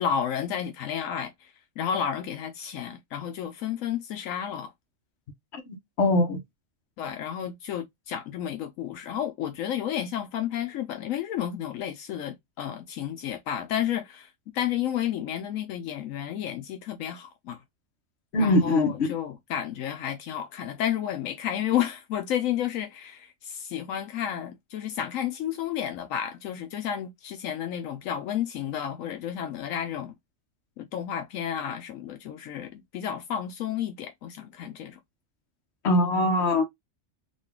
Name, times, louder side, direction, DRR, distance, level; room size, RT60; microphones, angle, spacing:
voice 1, 0.0-4.7 7.0-17.6 18.4-30.1 30.8-35.0, left 9 dB, 80° left, 1.0 m, -31 dB
voice 2, 6.0-6.4 18.3-18.9 35.8-36.6, left 1 dB, 60° left, 1.2 m, -22 dB
3.9 x 2.3 x 3.5 m
omnidirectional pair, 1.4 m